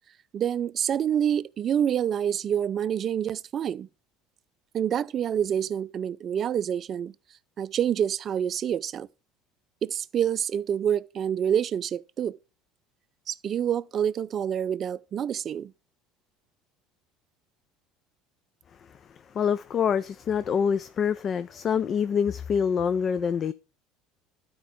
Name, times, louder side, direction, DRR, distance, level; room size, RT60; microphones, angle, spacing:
voice 1, 0.3-3.9 4.7-7.1 7.6-9.1 9.8-12.4 13.3-15.7, right 9 dB, 40° right, 0.4 m, -27 dB
voice 2, 18.8-23.5, left 7 dB, 40° left, 0.4 m, -26 dB
12.0 x 4.6 x 3.7 m
supercardioid pair, 105°, 0 cm